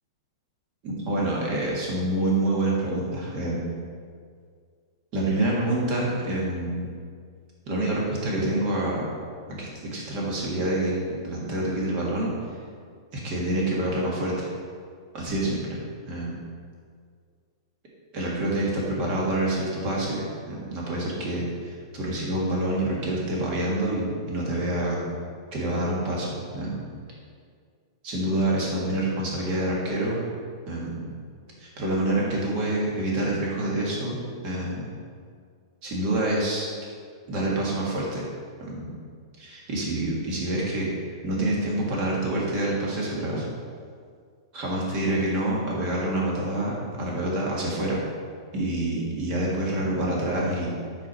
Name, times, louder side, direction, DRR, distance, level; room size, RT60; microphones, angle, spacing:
voice 1, 0.8-3.7 5.1-6.9 7.7-9.1 9.5-12.3 13.1-14.5 15.1-16.4 18.1-25.1 25.5-26.8 28.0-30.2 30.7-31.1 31.6-34.2 34.4-34.9 35.8-36.7 37.3-38.2 38.6-39.0 39.4-40.9 41.2-43.4 44.5-48.0 48.5-50.8, right 1 dB, 35° right, -4 dB, 1.8 m, -27 dB
6.1 x 4.6 x 5.7 m, 2.1 s
supercardioid pair, 155°, 2 cm